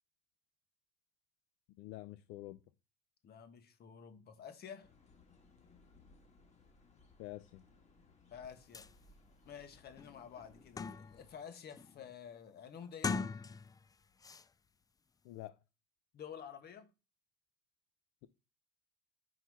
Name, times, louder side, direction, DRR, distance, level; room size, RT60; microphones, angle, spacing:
voice 1, 1.8-2.6 7.2-7.6 15.2-15.6, left 16 dB, 75° left, 0.5 m, -47 dB
voice 2, 3.2-4.9 8.3-8.9 9.4-13.3 16.1-16.9, left 8 dB, 50° left, 1.7 m, -50 dB
sound 1, 4.8-11.4, left 3 dB, 35° left, 2.1 m, -65 dB
sound 2, 8.4-8.5 8.7-8.9 9.5-9.6 10.0-11.3 11.7-12.1 12.9-13.9 14.2-14.4, left 5 dB, 20° left, 0.4 m, -40 dB
5.8 x 4.6 x 5.6 m
supercardioid pair, 80°, 20 cm